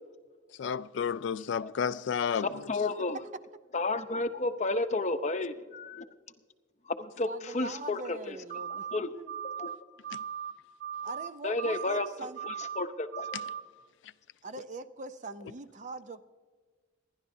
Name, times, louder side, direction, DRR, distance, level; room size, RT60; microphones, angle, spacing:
voice 1, 0.6-2.6 10.1-10.2 14.0-14.1, left 7 dB, 60° left, 0.3 m, -31 dB
voice 2, 2.4-3.2 3.7-6.0 6.9-8.4 8.9-9.1 9.4-9.7 11.4-12.1 12.4-13.3, left 2 dB, 35° left, 0.7 m, -32 dB
voice 3, 7.2-8.9 9.1-9.3 11.0-12.4 14.4-16.2, right 3 dB, 40° right, 0.5 m, -42 dB
sound 1, 8.5-9.0 9.3-9.8 10.0-10.5 10.8-11.3 11.6-12.1 12.4-12.8 13.1-13.6, right 8 dB, 65° right, 1.8 m, -38 dB
27.5 x 11.0 x 2.7 m
head